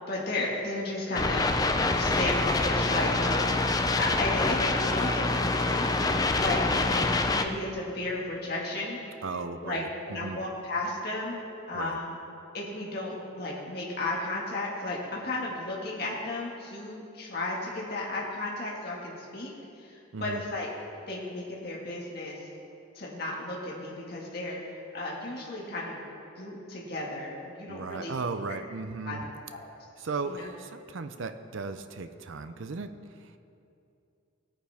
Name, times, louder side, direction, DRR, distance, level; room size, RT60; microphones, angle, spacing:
voice 1, 0.1-1.5 1.9-3.7 3.9-9.0 9.6-9.8 10.1-11.4 11.7-12.2 12.5-19.5 19.8-20.7 21.1-22.5 22.9-24.6 24.9-26.0 26.4-28.2 29.0-29.2 29.5-29.7 30.3-30.5, left 2 dB, 50° left, -4 dB, 1.8 m, -34 dB
sound 1, 1.1-7.4, left 2 dB, 20° left, 0.4 m, -26 dB
voice 2, 9.2-10.4 11.7-12.0 20.1-20.4 27.7-29.3 30.0-33.3, right 4 dB, 70° right, 9 dB, 0.5 m, -36 dB
17.5 x 9.4 x 3.5 m, 2.6 s
head